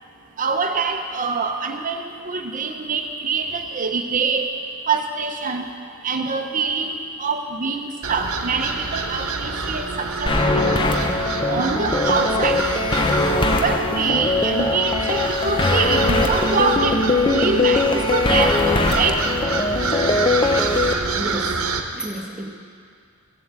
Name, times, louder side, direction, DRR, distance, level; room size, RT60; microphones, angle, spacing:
voice 1, 0.4-4.5 4.9-5.7 6.0-10.9 11.5-12.6 13.6-18.5 18.9-19.2, right 4 dB, 40° right, 4 dB, 0.8 m, -24 dB
sound 1, 8.0-21.8, right 4 dB, 70° right, 1.1 m, -27 dB
sound 2, 10.3-20.9, left 2 dB, 20° left, 0.7 m, -21 dB
voice 2, 21.1-22.5, right 1 dB, 5° right, -1 dB, 1.4 m, -32 dB
16.0 x 7.6 x 7.4 m, 2.3 s
head